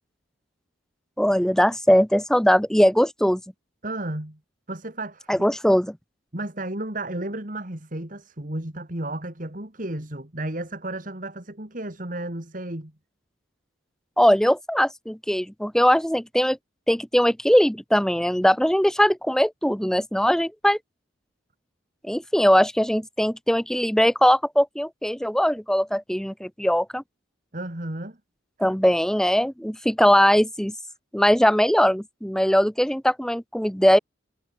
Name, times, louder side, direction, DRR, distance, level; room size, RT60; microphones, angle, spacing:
voice 1, 1.2-3.4 5.3-6.0 14.2-16.6 16.9-20.8 22.0-27.0 28.6-30.7 31.1-34.0, equal, 5° left, 1.0 m, -20 dB
voice 2, 3.8-4.4 4.7-5.5 6.3-12.9 27.5-28.2, right 1 dB, 40° right, 2.6 m, -33 dB
head